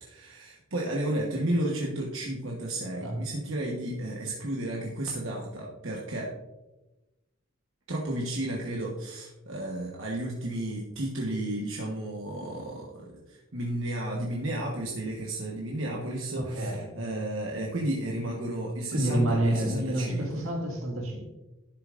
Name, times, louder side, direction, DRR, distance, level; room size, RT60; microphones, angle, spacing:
voice 1, 0.0-6.3 7.9-20.4, right 1 dB, 65° right, -2 dB, 1.2 m, -33 dB
voice 2, 16.4-16.9 18.9-21.3, right 1 dB, 85° right, 1 dB, 1.8 m, -28 dB
11.5 x 6.8 x 2.5 m, 1.0 s
head